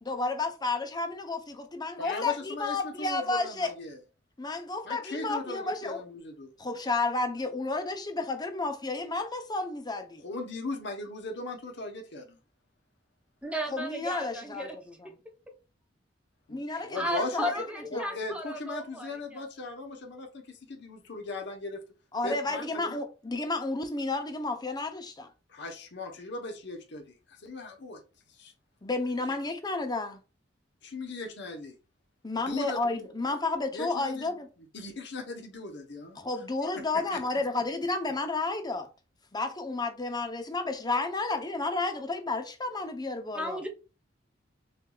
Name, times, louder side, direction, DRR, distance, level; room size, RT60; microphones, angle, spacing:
voice 1, 0.0-3.7 4.4-6.0 6.6-10.2 13.7-15.1 16.5-17.5 17.9-18.1 22.1-25.3 28.8-30.2 32.2-34.5 36.2-38.9 39.3-43.6, left 3 dB, 20° left, 0.7 m, -31 dB
voice 2, 2.0-4.0 4.8-6.5 10.2-12.4 16.5-16.6 16.8-17.7 17.9-21.8 22.2-23.0 25.5-28.0 28.3-28.5 30.8-31.7 32.4-33.1 33.7-34.3 34.7-36.2 36.7-37.2, left 2 dB, 65° left, 1.1 m, -38 dB
voice 3, 13.4-14.7 16.9-19.4 43.3-43.7, equal, 5° right, 0.9 m, -34 dB
6.6 x 2.7 x 2.4 m
head